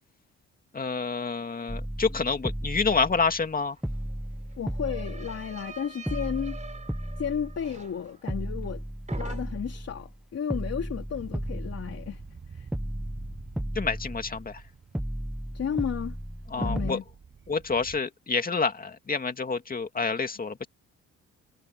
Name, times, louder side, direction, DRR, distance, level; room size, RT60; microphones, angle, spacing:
voice 1, 0.7-3.8 13.8-14.6 16.5-17.0 17.5-20.7, left 4 dB, 30° left, 2.3 m, -28 dB
sound 1, 1.7-3.5 3.8-5.7 6.1-7.9 8.3-10.2 10.5-12.4 12.7-14.6 14.9-16.9, equal, ahead, 0.6 m, -34 dB
sound 2, 3.2-3.3 3.5-8.8 9.1-9.8, right 3 dB, 25° right, 3.1 m, -46 dB
voice 2, 4.6-6.6 7.2-8.9 9.2-12.2 12.5-12.7 15.5-16.2 16.6-17.0, left 8 dB, 55° left, 3.7 m, -33 dB
sound 3, 11.1-18.0, right 5 dB, 40° right, 6.5 m, -49 dB
cardioid pair, 90°, 30 cm